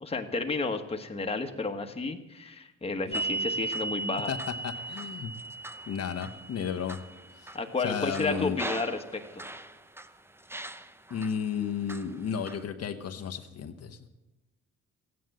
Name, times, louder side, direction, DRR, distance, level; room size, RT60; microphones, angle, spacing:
voice 1, 0.0-4.3 7.5-9.4, left 3 dB, 20° left, 4 dB, 1.4 m, -32 dB
sound 1, 3.1-10.1 10.5-11.3 11.9-12.6, right 2 dB, 10° right, 0.7 m, -37 dB
voice 2, 4.6-5.3 5.9-7.0 7.3-7.5 7.8-8.6 11.1-14.1, left 7 dB, 55° left, 6 dB, 1.1 m, -33 dB
14.5 x 9.5 x 7.8 m, 1.0 s
cardioid pair, 90°, 30 cm